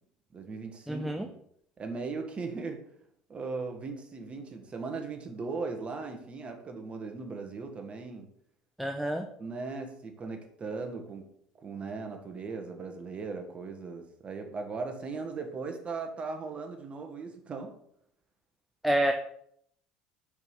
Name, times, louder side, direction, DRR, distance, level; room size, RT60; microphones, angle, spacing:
voice 1, 0.3-1.3 1.8-2.8 3.3-8.3 9.4-11.3 11.6-17.7, right 4 dB, 30° right, 4 dB, 1.5 m, -38 dB
voice 2, 0.9-1.3 8.8-9.3 18.8-19.1, right 1 dB, ahead, 5 dB, 0.6 m, -28 dB
5.3 x 4.8 x 5.6 m, 0.69 s
hypercardioid pair, 80°, 4 cm